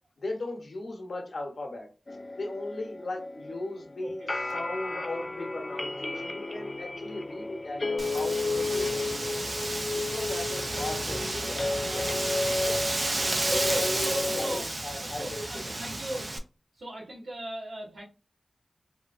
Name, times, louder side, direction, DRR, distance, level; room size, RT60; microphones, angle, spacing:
voice 1, 0.2-1.9 2.4-9.0 9.9-11.6 11.9-12.1 12.6-12.8 13.2-15.6, left 2 dB, 75° left, 2 dB, 0.9 m, -37 dB
sound 1, 2.1-14.6, left 3 dB, 40° left, 0.4 m, -33 dB
Wind, 8.0-16.4, right 2 dB, 40° right, 0.4 m, -32 dB
voice 2, 13.5-14.6 15.0-16.2 16.8-18.0, right 1 dB, 85° right, -3 dB, 1.2 m, -37 dB
3.1 x 2.7 x 2.5 m, 0.34 s
wide cardioid pair, 80°, 0 cm